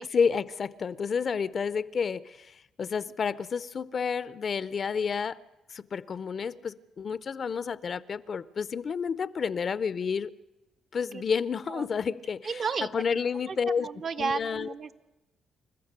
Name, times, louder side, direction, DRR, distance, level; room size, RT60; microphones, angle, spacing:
voice 1, 0.1-5.4 5.7-10.3 10.9-13.9 14.2-14.7, left 6 dB, 45° left, 0.6 m, -30 dB
voice 2, 12.4-12.9 13.5-15.0, right 5 dB, 50° right, 0.9 m, -33 dB
28.0 x 14.0 x 6.7 m
cardioid pair, 90°, 0 cm